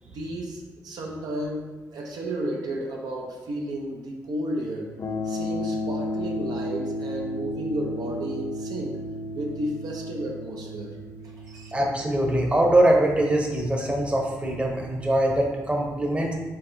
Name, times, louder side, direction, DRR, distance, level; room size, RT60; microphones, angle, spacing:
voice 1, 0.0-4.9 5.2-8.9 9.3-10.9 11.2-11.7, right 1 dB, 85° right, -1 dB, 0.6 m, -33 dB
sound 1, 5.0-15.1, left 1 dB, 50° left, 0.5 m, -34 dB
voice 2, 11.7-16.3, right 1 dB, 15° right, 0 dB, 0.7 m, -22 dB
4.6 x 3.4 x 2.6 m, 1.2 s
cardioid pair, 80°, 7 cm